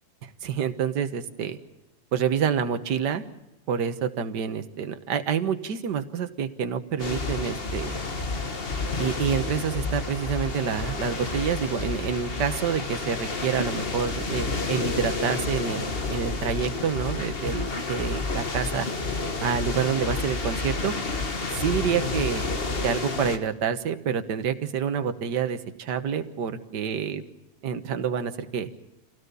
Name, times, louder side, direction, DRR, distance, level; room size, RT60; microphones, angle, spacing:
voice 1, 0.2-1.6 2.1-3.2 3.7-8.0 9.0-18.9 19.4-20.9 21.5-22.5 22.8-27.2 27.6-28.9, right 7 dB, 60° right, 9 dB, 1.8 m, -28 dB
sound 1, 7.0-23.4, left 3 dB, 30° left, 1.6 m, -30 dB
26.0 x 17.0 x 6.9 m, 0.97 s
omnidirectional pair, 2.1 m